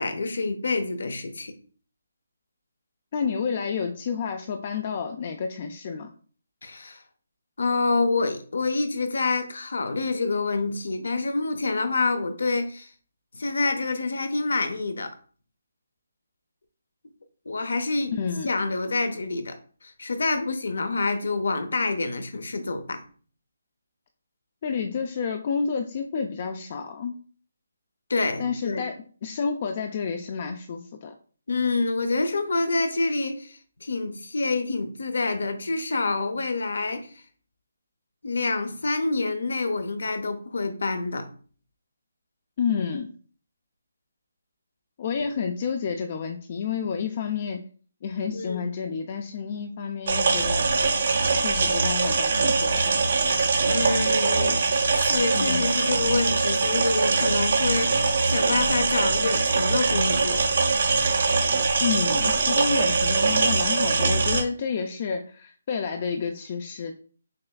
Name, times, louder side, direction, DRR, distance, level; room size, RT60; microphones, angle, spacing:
voice 1, 0.0-1.5 6.6-7.0 7.6-12.9 13.3-15.1 17.5-18.2 18.4-19.6 19.8-23.0 28.1-28.8 31.5-37.1 38.2-41.3 48.3-48.7 53.6-60.4, left 3 dB, 75° left, 0.7 m, -27 dB
voice 2, 3.1-6.1 18.1-18.5 24.6-27.2 28.4-31.1 42.6-43.1 45.0-47.7 48.0-50.6 51.3-53.0 55.4-55.7 61.8-66.9, left 6 dB, 35° left, 0.3 m, -30 dB
sound 1, 50.1-64.4, right 4 dB, 55° right, 0.8 m, -22 dB
6.4 x 2.3 x 2.3 m
hypercardioid pair, 165°, 0 cm